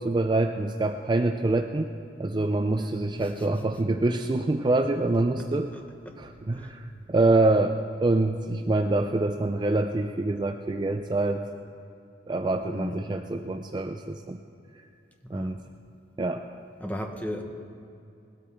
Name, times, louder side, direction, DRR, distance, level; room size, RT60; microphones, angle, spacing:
voice 1, 0.0-1.9 2.2-5.7 6.2-11.4 12.3-14.4 15.3-15.6 16.2-16.5, right 2 dB, 25° right, 6 dB, 0.4 m, -25 dB
voice 2, 2.7-3.8 5.4-6.2 6.5-6.8 12.7-13.0 15.2-15.6 16.8-17.4, equal, 10° left, 3 dB, 1.1 m, -36 dB
19.5 x 13.0 x 3.6 m, 2.6 s
head